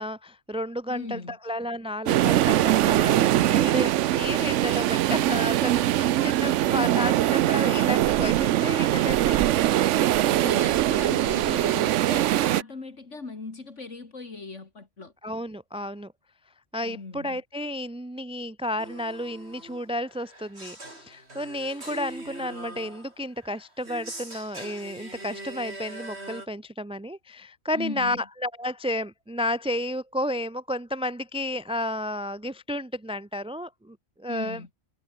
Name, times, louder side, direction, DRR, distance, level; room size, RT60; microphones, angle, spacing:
voice 1, 0.0-9.9 11.4-11.8 15.2-16.1 16.7-34.6, left 1 dB, 10° right, 0.3 m, -32 dB
voice 2, 0.9-1.4 10.1-15.1 16.8-17.4 27.7-28.2 34.3-34.7, left 3 dB, 60° left, 2.9 m, -38 dB
sound 1, 2.1-12.6, right 13 dB, 70° right, 0.9 m, -22 dB
sound 2, 18.8-26.5, right 1 dB, 50° right, 6.6 m, -42 dB
omnidirectional pair, 1.4 m